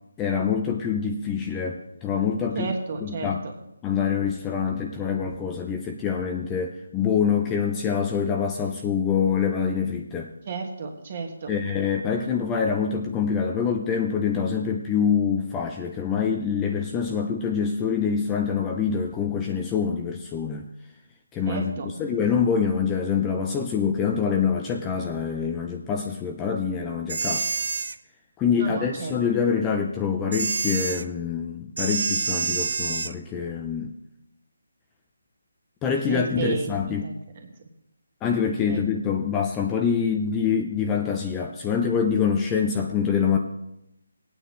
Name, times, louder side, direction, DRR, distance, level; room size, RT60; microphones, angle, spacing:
voice 1, 0.2-2.7 3.0-3.4 3.8-10.3 11.5-20.7 21.3-27.5 28.4-33.9 35.8-37.0 38.2-43.4, left 6 dB, 10° left, 2 dB, 0.5 m, -25 dB
voice 2, 2.6-3.3 10.5-11.5 21.5-21.9 28.6-29.1 36.1-37.1 37.4-37.5 38.6-38.8, right 4 dB, 35° right, 3 dB, 1.7 m, -31 dB
sound 1, 27.1-28.0 30.3-31.0 31.8-33.1, right 4 dB, 60° right, 0.6 m, -27 dB
19.0 x 8.9 x 3.2 m, 0.83 s
hypercardioid pair, 170°, 0 cm